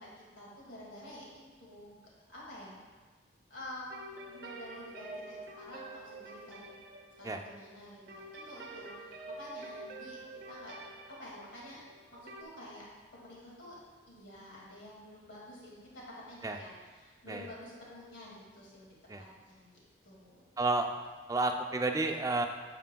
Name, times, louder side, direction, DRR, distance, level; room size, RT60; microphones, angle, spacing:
voice 1, 0.0-2.0 2.3-2.7 3.5-6.7 7.2-10.2 10.5-10.8 11.2-11.8 12.1-12.8 13.1-13.8 14.1-18.9 19.5-19.7 20.0-20.4, left 1 dB, 80° left, -5 dB, 2.0 m, -49 dB
sound 1, 3.9-12.4, right 2 dB, 50° right, 0.7 m, -48 dB
voice 2, 20.6-20.9 21.3-22.5, right 2 dB, 20° right, 5 dB, 0.3 m, -30 dB
9.2 x 7.4 x 2.2 m, 1.4 s
head